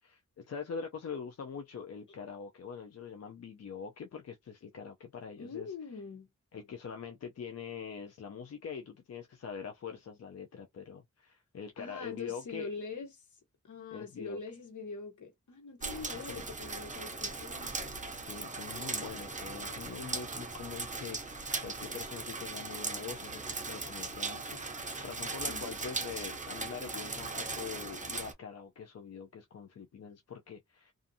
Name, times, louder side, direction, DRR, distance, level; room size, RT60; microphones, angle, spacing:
voice 1, 0.0-5.7 6.5-12.7 13.9-14.6 16.1-16.4 18.2-30.9, left 6 dB, 55° left, 0.5 m, -44 dB
voice 2, 5.4-6.3 11.8-13.1 13.6-17.7 25.5-25.7, left 4 dB, 70° left, 1.2 m, -43 dB
sound 1, 15.8-28.3, right 3 dB, 25° right, 0.6 m, -39 dB
2.5 x 2.4 x 2.6 m
wide cardioid pair, 105°, 31 cm